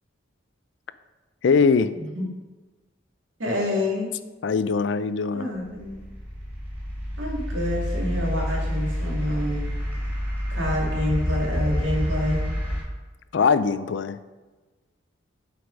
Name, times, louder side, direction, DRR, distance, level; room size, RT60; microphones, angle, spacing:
voice 1, 1.4-1.9 4.4-5.4 13.3-14.2, left 5 dB, 70° left, 14 dB, 0.4 m, -21 dB
voice 2, 1.9-2.3 3.4-4.1 5.3-6.1 7.2-9.7 10.5-12.4, left 1 dB, 90° right, -2 dB, 2.1 m, -27 dB
sound 1, 5.6-12.8, equal, 10° right, 2.4 m, -28 dB
8.0 x 4.8 x 5.1 m, 1.2 s
head